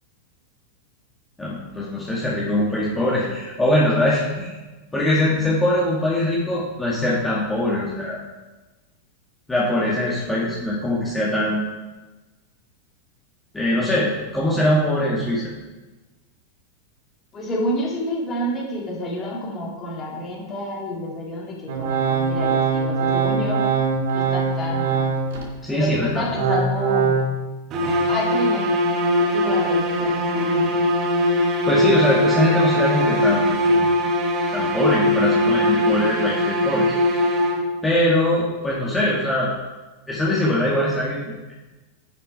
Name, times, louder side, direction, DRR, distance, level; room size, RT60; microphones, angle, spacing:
voice 1, 1.4-4.5 4.9-8.2 9.5-11.7 13.5-15.5 25.6-26.6 31.7-33.4 34.5-36.9 37.8-39.5 40.1-41.5, left 1 dB, 10° left, -6 dB, 2.2 m, -22 dB
voice 2, 17.3-23.6 24.1-25.1 25.7-27.2 28.1-28.7 29.2-30.7, left 1 dB, 25° left, -3 dB, 3.1 m, -29 dB
Organ, 21.7-25.5 25.9-27.2, right 5 dB, 55° right, 2.1 m, -22 dB
sound 1, 27.7-37.9, left 1 dB, 35° right, 1.5 m, -21 dB
10.5 x 6.7 x 4.9 m, 1.2 s
figure-of-eight pair, 90°, 0 cm